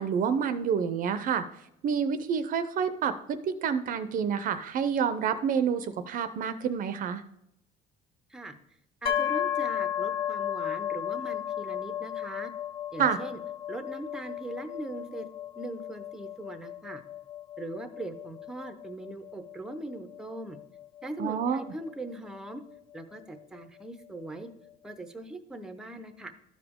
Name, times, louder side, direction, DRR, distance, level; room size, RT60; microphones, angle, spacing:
voice 1, 0.0-1.4 1.8-7.2 13.0-13.2 21.2-21.6, right 7 dB, 50° right, 12 dB, 0.5 m, -28 dB
voice 2, 9.0-12.5 12.9-13.4 13.7-15.3 15.6-17.0 17.6-20.6 21.0-22.6 22.9-24.5 24.8-26.3, right 2 dB, 5° right, 9 dB, 0.6 m, -40 dB
sound 1, 9.1-22.7, left 10 dB, 30° left, 0.7 m, -35 dB
12.5 x 4.9 x 3.6 m, 0.79 s
cardioid pair, 130°, 18 cm